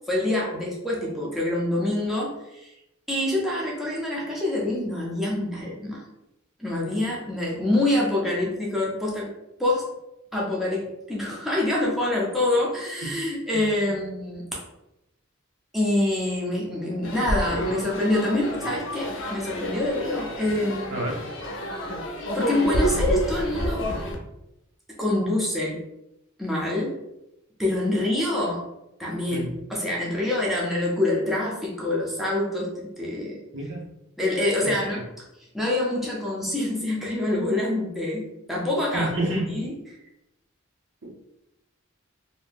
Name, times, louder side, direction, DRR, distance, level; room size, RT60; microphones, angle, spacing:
voice 1, 0.1-2.7 3.1-6.0 6.6-9.3 9.6-9.9 10.3-14.6 15.7-21.0 22.3-23.8 25.0-25.8 26.4-27.0 27.6-28.6 29.0-33.4 34.2-35.2 35.5-39.1 39.5-39.7, left 1 dB, ahead, -5 dB, 0.5 m, -26 dB
sound 1, 17.0-24.2, equal, 65° left, 0.5 m, -29 dB
voice 2, 33.5-33.8 34.6-35.0 38.9-39.6 41.0-41.1, right 1 dB, 60° right, -1 dB, 0.7 m, -29 dB
2.7 x 2.1 x 3.3 m, 0.88 s
head